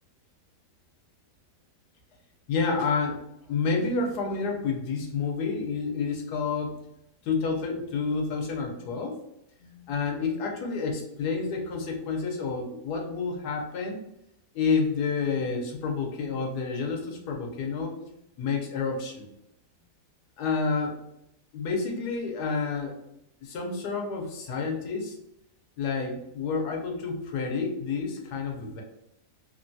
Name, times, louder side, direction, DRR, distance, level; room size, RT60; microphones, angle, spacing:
voice 1, 2.5-3.2 3.5-6.8 7.2-9.2 9.6-14.0 14.5-17.9 18.4-19.3 20.4-21.0 21.5-22.9 23.4-25.2 25.8-28.8, left 4 dB, 80° left, 1 dB, 1.2 m, -29 dB
3.2 x 2.2 x 2.6 m, 0.81 s
omnidirectional pair, 1.8 m